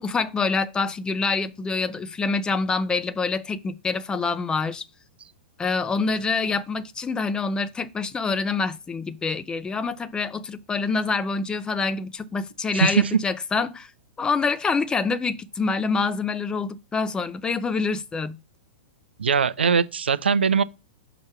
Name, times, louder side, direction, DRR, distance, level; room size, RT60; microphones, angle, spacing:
voice 1, 0.0-4.8 5.6-13.9 14.2-18.4, left 4 dB, 15° left, 0.5 m, -26 dB
voice 2, 12.7-13.2 19.2-20.6, right 5 dB, 85° right, 0.5 m, -21 dB
6.4 x 2.9 x 5.8 m
hypercardioid pair, 110°, 6 cm